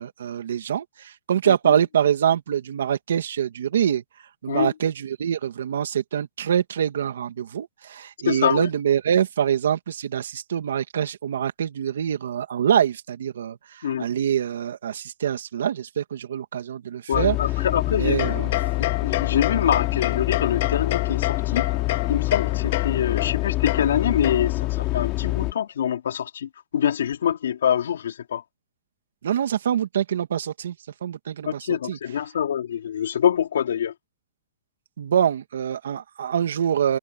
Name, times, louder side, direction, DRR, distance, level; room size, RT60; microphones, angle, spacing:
voice 1, 0.0-4.0 4.4-13.6 14.0-17.4 17.9-18.5 29.2-30.7 31.0-31.6 31.9-32.0 35.0-37.0, right 9 dB, 80° right, 2.7 m, -24 dB
voice 2, 1.5-1.8 4.5-4.7 8.2-8.7 13.8-14.1 17.1-18.4 19.0-21.7 22.1-28.4 31.5-33.9, left 9 dB, 80° left, 3.8 m, -25 dB
sound 1, 17.1-25.5, left 20 dB, 25° left, 4.0 m, -26 dB
sound 2, 18.2-24.8, left 15 dB, 45° left, 2.2 m, -30 dB
hypercardioid pair, 170°, 0 cm